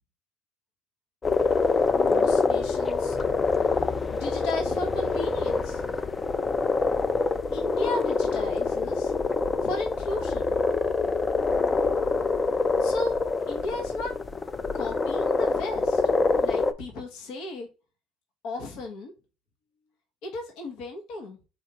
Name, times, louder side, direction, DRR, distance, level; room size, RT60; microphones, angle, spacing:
sound 1, 1.2-16.7, left 4 dB, 30° left, 0.5 m, -25 dB
voice 1, 1.9-3.2 4.1-5.8 7.5-9.1 9.6-10.6 12.8-13.1 13.5-14.1 14.7-16.0 16.4-17.7 18.4-19.1 20.2-21.4, left 2 dB, 70° left, 1.1 m, -35 dB
4.5 x 3.3 x 2.9 m
supercardioid pair, 75°, 0 cm